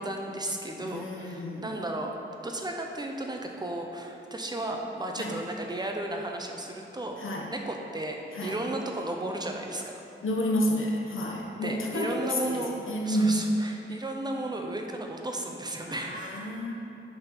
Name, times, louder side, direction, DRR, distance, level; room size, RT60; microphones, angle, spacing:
voice 1, 0.0-2.1 2.4-7.2 7.5-9.8 11.6-12.7 13.0-16.5, right 1 dB, 20° right, 2 dB, 0.7 m, -34 dB
voice 2, 0.8-1.7 5.2-5.4 7.2-7.5 8.3-8.6 10.2-13.4 15.9-16.7, equal, 90° left, 0 dB, 0.8 m, -30 dB
8.7 x 3.8 x 5.9 m, 2.8 s
wide cardioid pair, 135°, 20 cm